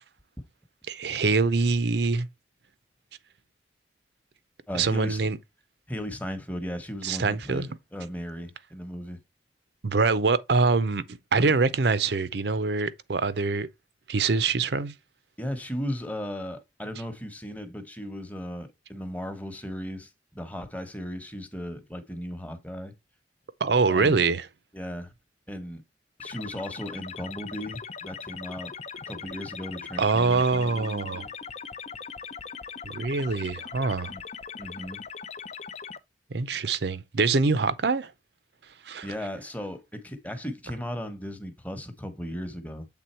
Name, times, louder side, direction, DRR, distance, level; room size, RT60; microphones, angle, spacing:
voice 1, 0.9-2.3 4.7-5.4 7.0-7.7 9.8-13.7 14.1-14.9 23.6-24.5 30.0-31.3 32.8-34.1 36.3-38.1 38.9-39.1, right 4 dB, 70° right, 0.6 m, -24 dB
voice 2, 4.7-5.3 5.9-9.2 15.4-22.9 23.9-24.1 24.7-25.1 25.5-25.8 26.2-28.7 29.1-31.3 34.1-34.2 34.6-35.0 39.0-42.9, equal, 10° left, 1.0 m, -36 dB
sound 1, 26.2-36.0, left 6 dB, 40° left, 0.5 m, -40 dB
7.7 x 3.6 x 4.3 m
head